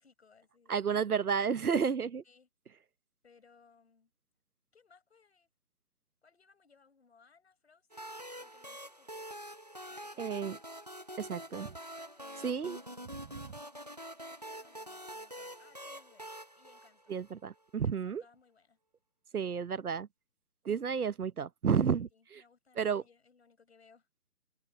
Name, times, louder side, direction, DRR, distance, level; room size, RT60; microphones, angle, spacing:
voice 1, 0.0-0.8 2.2-2.5 3.2-4.1 4.7-5.5 6.2-9.4 9.8-10.5 12.2-13.1 14.3-16.3 16.6-17.1 17.8-18.8 19.3-19.6 22.1-24.1, left 5 dB, 40° left, 7.4 m, -65 dB
voice 2, 0.7-2.2 10.2-10.6 11.2-11.7 12.4-12.8 17.1-18.2 19.3-20.1 20.6-22.4 22.8-23.0, right 6 dB, 65° right, 0.9 m, -31 dB
sound 1, 7.9-17.5, equal, 25° right, 0.8 m, -46 dB
open air
hypercardioid pair, 180°, 47 cm